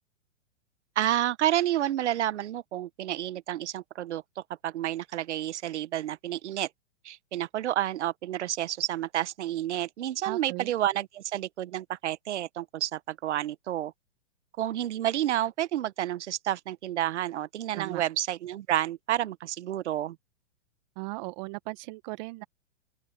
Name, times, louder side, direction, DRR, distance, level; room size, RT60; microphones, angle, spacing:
voice 1, 1.0-6.7 7.0-13.9 14.6-20.2, right 12 dB, 70° right, 1.1 m, -30 dB
voice 2, 10.2-10.7 17.7-18.0 21.0-22.4, right 25 dB, 40° right, 0.9 m, -37 dB
open air
hypercardioid pair, 135°, 36 cm